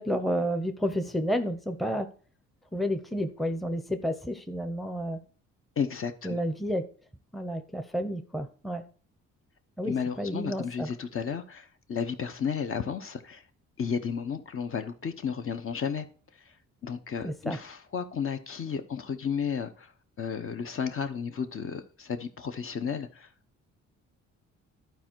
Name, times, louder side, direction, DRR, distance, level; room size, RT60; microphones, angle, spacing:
voice 1, 0.0-2.1 2.7-5.2 6.2-6.8 7.3-8.8 9.8-10.9 17.2-17.6, equal, ahead, 0.7 m, -30 dB
voice 2, 5.8-6.4 9.8-13.4 13.8-16.1 16.8-19.9 20.2-23.3, left 6 dB, 45° left, 0.9 m, -33 dB
11.5 x 4.5 x 4.6 m
cardioid pair, 90°, 30 cm